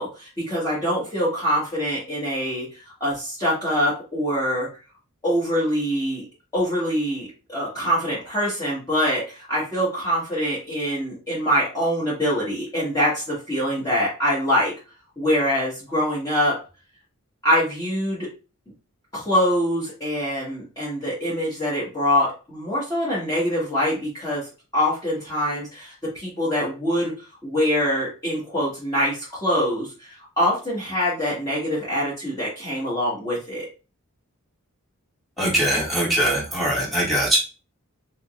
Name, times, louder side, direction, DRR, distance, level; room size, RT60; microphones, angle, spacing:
voice 1, 0.0-4.7 5.2-6.2 6.5-14.7 15.2-16.5 17.4-18.3 19.1-24.4 24.7-27.1 27.4-33.7, equal, 15° left, -9 dB, 1.5 m, -24 dB
voice 2, 35.4-37.4, right 1 dB, ahead, -6 dB, 2.1 m, -21 dB
4.1 x 3.9 x 2.5 m, 0.32 s
head